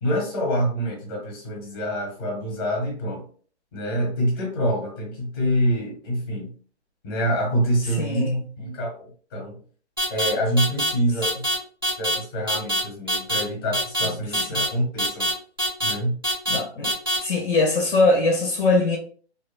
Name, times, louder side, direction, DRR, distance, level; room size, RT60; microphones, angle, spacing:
voice 1, 0.0-3.2 3.7-6.5 7.0-8.3 8.6-9.6 10.1-11.3 12.0-15.3 15.8-16.2, equal, 20° left, 0.7 m, -26 dB
voice 2, 8.0-8.4 14.5-14.7 16.5-16.9 17.2-19.0, left 2 dB, 50° left, 0.5 m, -21 dB
sound 1, 10.0-10.3 10.6-10.9 11.2-11.5 11.8-12.1 12.5-12.8 13.1-13.4 13.7-14.1 14.3-14.7 15.0-15.3 15.6-15.9 16.2-16.6 16.8-17.2, equal, 25° right, 0.3 m, -23 dB
2.7 x 2.1 x 2.3 m
hypercardioid pair, 165°, 34 cm